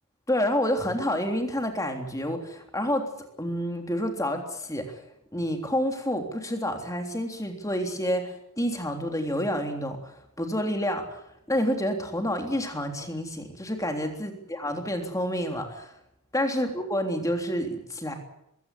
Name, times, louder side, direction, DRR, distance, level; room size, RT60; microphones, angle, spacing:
voice 1, 0.3-3.1 3.4-5.0 5.3-15.9 16.3-18.1, equal, 15° left, 4 dB, 3.4 m, -29 dB
21.0 x 16.5 x 9.7 m, 0.80 s
head